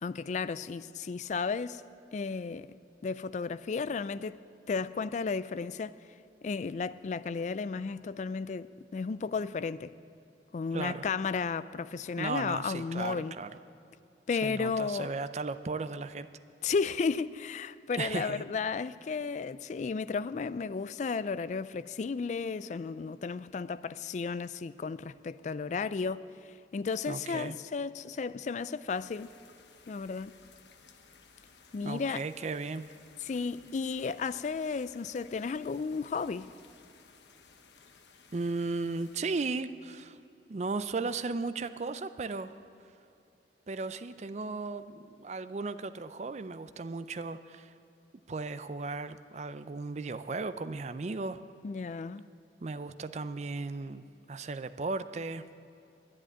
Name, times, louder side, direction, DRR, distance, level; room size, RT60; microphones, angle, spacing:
voice 1, 0.0-1.8 2.1-2.8 3.0-4.4 4.7-6.0 6.4-9.9 10.5-13.3 14.3-15.1 16.6-29.3 29.9-30.3 31.7-32.2 33.2-36.5 51.6-52.3, left 5 dB, 40° left, 0.3 m, -33 dB
voice 2, 10.7-11.1 12.2-13.5 14.4-16.3 18.0-18.4 27.1-27.6 31.8-32.8 38.3-40.2 40.5-42.5 43.7-47.7 48.3-51.4 52.6-55.5, right 3 dB, 40° right, 0.4 m, -36 dB
sound 1, 28.9-39.5, left 5 dB, 80° left, 1.0 m, -58 dB
11.0 x 10.0 x 9.7 m
head